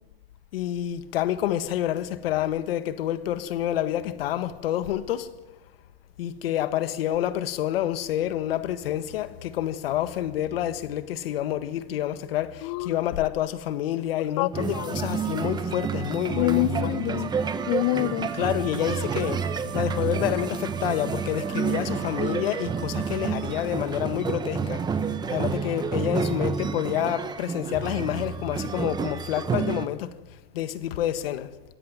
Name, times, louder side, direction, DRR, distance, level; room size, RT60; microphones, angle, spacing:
voice 1, 0.5-5.3 6.2-12.5 12.8-16.9 18.4-19.4 19.7-24.8 25.3-30.1 30.5-31.5, left 12 dB, 70° left, 1.7 m, -28 dB
voice 2, 12.6-13.0 14.4-14.9 16.3-17.3 17.7-18.3, left 21 dB, 45° left, 0.6 m, -26 dB
sound 1, 14.5-29.9, right 6 dB, 15° right, 1.1 m, -29 dB
Wind instrument woodwind instrument, 17.2-23.8, right 10 dB, 40° right, 6.0 m, -41 dB
26.0 x 13.5 x 9.6 m
supercardioid pair, 140°, 30 cm